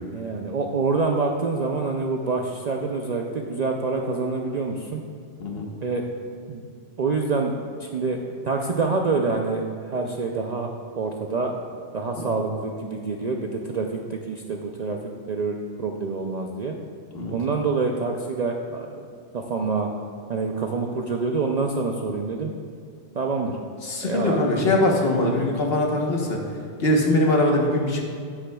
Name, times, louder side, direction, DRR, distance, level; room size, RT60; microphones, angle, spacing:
voice 1, 0.1-5.0 5.8-6.0 6.5-6.6 7.0-7.5 7.8-8.2 8.4-10.7 11.0-11.6 11.9-15.0 15.3-16.8 17.3-19.0 19.3-19.9 20.3-22.5 23.1-23.6 24.0-24.4, right 4 dB, 55° right, 2 dB, 0.5 m, -26 dB
voice 2, 23.8-26.4 26.8-28.0, left 1 dB, 60° left, 0 dB, 1.3 m, -22 dB
9.7 x 9.4 x 2.3 m, 2.3 s
omnidirectional pair, 1.2 m